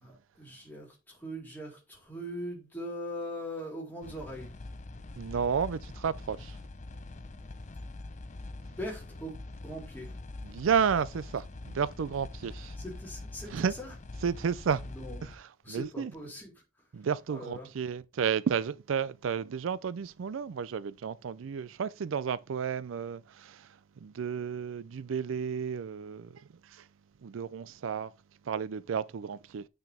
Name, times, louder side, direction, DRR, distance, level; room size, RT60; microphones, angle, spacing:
voice 1, 0.0-4.6 8.6-9.4 9.6-10.1 12.8-13.9 14.9-15.3 15.6-16.5 17.3-17.7, equal, 10° left, 3.7 m, -41 dB
sound 1, 4.0-15.3, left 2 dB, 35° left, 0.6 m, -44 dB
voice 2, 5.2-6.6 10.4-12.8 13.5-13.7 14.2-14.8 15.2-16.1 16.9-26.9 27.2-28.1 28.4-29.7, right 7 dB, 75° right, 0.4 m, -32 dB
9.0 x 5.9 x 3.4 m
head